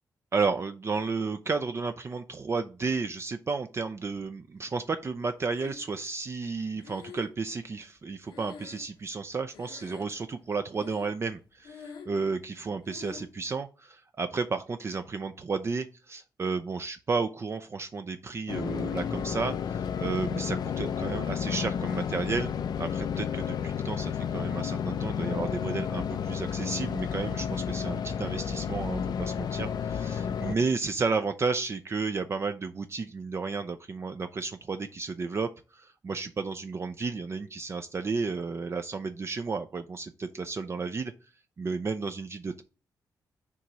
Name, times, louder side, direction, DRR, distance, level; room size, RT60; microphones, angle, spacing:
voice 1, 0.3-22.5 22.8-41.1 41.6-42.6, right 4 dB, 35° right, 7 dB, 0.5 m, -32 dB
Breathing, 5.5-6.2 6.8-9.3 9.5-10.3 10.7-11.3 11.6-12.3 12.8-13.3, left 6 dB, 80° left, 0.9 m, -47 dB
sound 1, 18.5-30.5, left 7 dB, 65° left, 0.4 m, -31 dB
5.9 x 3.0 x 5.5 m, 0.33 s
cardioid pair, 100°, 8 cm